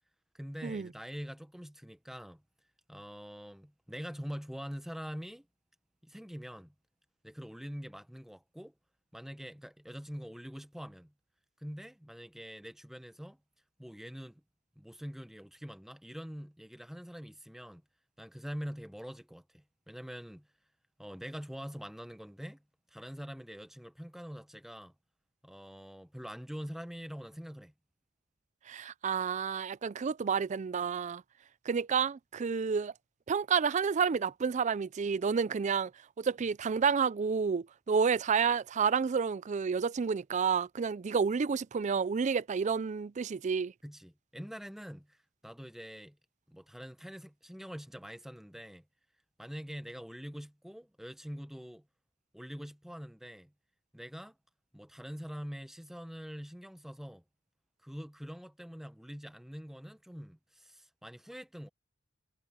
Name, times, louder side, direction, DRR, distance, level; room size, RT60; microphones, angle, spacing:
voice 1, 0.3-2.4 2.9-5.5 6.0-6.7 7.2-8.7 9.1-11.1 11.6-13.4 13.8-14.4 14.8-17.8 18.2-20.5 21.0-22.6 22.9-24.9 25.4-27.7 43.8-45.2 45.4-46.2 46.5-48.8 49.4-51.9 52.3-53.5 53.9-54.4 54.7-57.2 57.8-61.7, equal, ahead, 0.8 m, -44 dB
voice 2, 28.7-31.2 31.7-32.9 33.3-35.9 36.2-43.7, right 6 dB, 35° right, 0.4 m, -30 dB
head